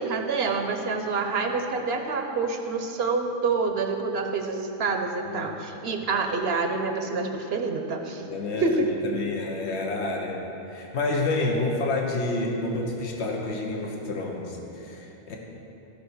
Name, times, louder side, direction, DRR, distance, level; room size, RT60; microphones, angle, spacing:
voice 1, 0.0-8.2 8.6-8.9, right 4 dB, 60° right, 5 dB, 1.1 m, -27 dB
voice 2, 8.2-8.7 9.0-10.4 10.6-15.4, left 2 dB, 70° left, 0 dB, 1.5 m, -29 dB
14.5 x 5.7 x 6.2 m, 3.0 s
omnidirectional pair, 1.2 m